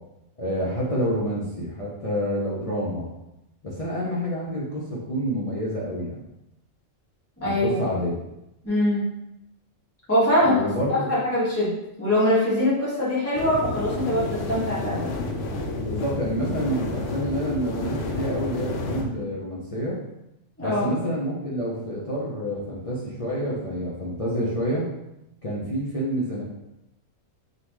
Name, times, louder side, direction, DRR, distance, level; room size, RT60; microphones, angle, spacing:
voice 1, 0.4-3.1 3.6-6.2 7.4-8.2 10.4-11.1 15.7-20.0 20.6-24.9 25.4-26.4, equal, 30° left, -7 dB, 0.8 m, -28 dB
voice 2, 7.4-7.8 8.6-9.1 10.1-10.6 11.1-15.3 20.6-20.8, left 1 dB, 10° left, -9 dB, 1.4 m, -23 dB
sound 1, 13.3-19.0, left 2 dB, 75° left, 1.0 m, -30 dB
4.0 x 3.6 x 3.0 m, 0.88 s
omnidirectional pair, 1.3 m